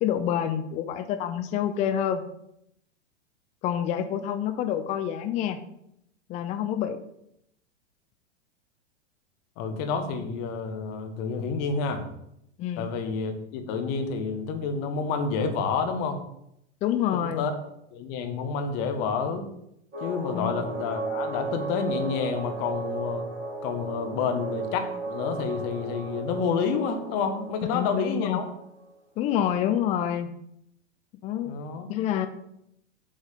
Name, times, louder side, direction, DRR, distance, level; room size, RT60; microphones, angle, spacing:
voice 1, 0.0-2.2 3.6-5.6 6.3-7.0 12.6-12.8 16.8-17.5 20.3-20.6 27.7-28.4 29.2-30.3 31.2-31.5 31.9-32.3, left 10 dB, 20° left, 8 dB, 0.5 m, -27 dB
voice 2, 9.6-12.1 12.8-16.2 17.1-17.5 17.9-19.5 20.0-23.3 23.6-28.4 31.4-31.9, left 5 dB, 35° left, 7 dB, 1.6 m, -29 dB
sound 1, 19.9-28.9, right 3 dB, 25° right, 3.7 m, -35 dB
8.8 x 4.0 x 6.8 m, 0.77 s
figure-of-eight pair, 100°, 35 cm